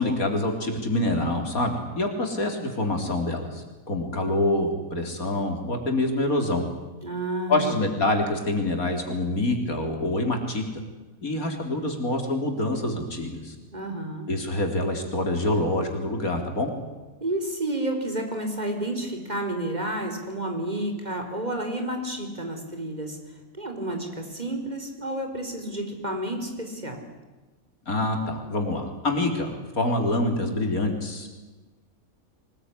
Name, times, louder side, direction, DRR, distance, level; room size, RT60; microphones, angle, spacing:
voice 1, 0.0-6.6 7.5-10.8 11.2-13.5 14.3-16.7 27.9-31.3, left 2 dB, 75° left, 4 dB, 4.2 m, -26 dB
voice 2, 7.0-7.8 13.7-14.3 17.2-23.2 23.6-27.0, right 1 dB, 30° right, 4 dB, 4.5 m, -30 dB
25.0 x 20.5 x 9.9 m, 1.2 s
omnidirectional pair, 1.5 m